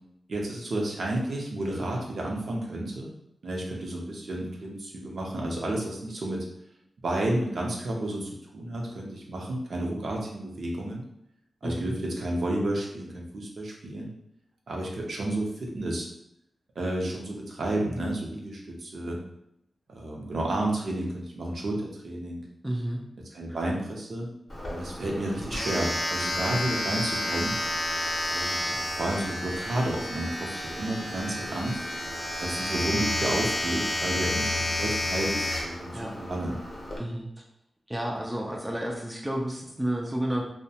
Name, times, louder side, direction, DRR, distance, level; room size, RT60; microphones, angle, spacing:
voice 1, 0.3-3.1 3.4-6.5 7.0-11.1 11.6-14.1 14.7-16.1 16.8-19.2 19.9-22.4 23.3-24.3 24.7-27.6 28.3-31.8 32.4-36.6, right 1 dB, 65° right, -1 dB, 0.6 m, -31 dB
voice 2, 11.6-12.0 22.6-23.0 35.9-36.1 37.0-37.3 37.9-40.4, right 1 dB, 10° right, 0 dB, 0.4 m, -31 dB
Domestic sounds home sounds, 24.5-37.0, left 1 dB, 35° left, 0.6 m, -31 dB
2.6 x 2.1 x 2.7 m, 0.76 s
wide cardioid pair, 105°, 0 cm